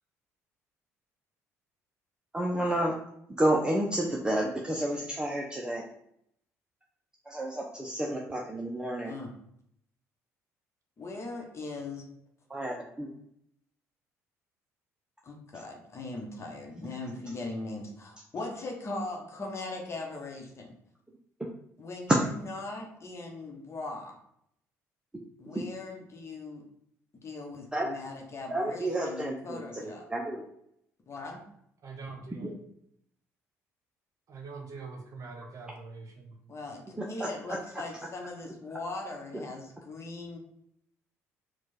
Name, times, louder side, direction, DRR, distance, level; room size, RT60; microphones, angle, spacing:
voice 1, 2.3-2.9 3.4-5.8 7.3-9.2 12.5-13.1 25.5-25.6 27.7-27.9 28.5-30.4 32.4-32.5 37.2-37.3, right 1 dB, 10° right, -1 dB, 0.7 m, -30 dB
voice 2, 11.0-12.0 15.2-20.7 21.8-24.1 25.4-26.6 27.2-30.1 31.1-31.4 36.5-40.4, left 2 dB, 35° left, 1 dB, 1.1 m, -39 dB
voice 3, 31.8-32.5 34.3-36.3, right 4 dB, 45° right, 2 dB, 1.0 m, -43 dB
4.5 x 2.4 x 4.3 m, 0.73 s
figure-of-eight pair, 50°, 8 cm